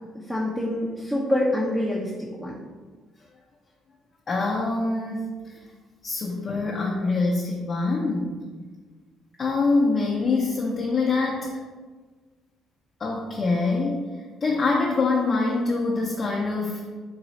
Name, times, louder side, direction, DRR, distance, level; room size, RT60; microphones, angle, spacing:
voice 1, 0.3-2.5, left 1 dB, 5° right, -5 dB, 0.7 m, -26 dB
voice 2, 4.3-5.3 6.0-8.4 9.4-11.5 13.0-14.1 14.4-16.9, left 3 dB, 40° left, -3 dB, 0.6 m, -24 dB
4.0 x 2.3 x 4.0 m, 1.4 s
cardioid pair, 90°, 0 cm